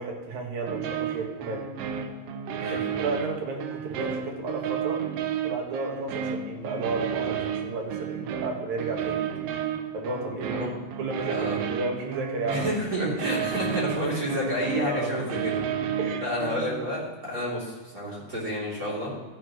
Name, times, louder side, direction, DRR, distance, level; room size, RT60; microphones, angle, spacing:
voice 1, 0.0-1.7 2.7-5.0 5.4-9.2 9.9-10.7 11.0-12.7 13.0-13.2 14.1-14.2 14.8-15.2 16.0-16.3, right 3 dB, 60° right, 1 dB, 2.7 m, -32 dB
sound 1, 0.7-16.9, right 8 dB, 80° right, 2.5 m, -32 dB
voice 2, 10.3-10.7 11.3-11.6 12.5-15.5 16.2-19.1, equal, 25° right, -7 dB, 3.4 m, -30 dB
14.5 x 10.0 x 3.1 m, 1.4 s
omnidirectional pair, 4.2 m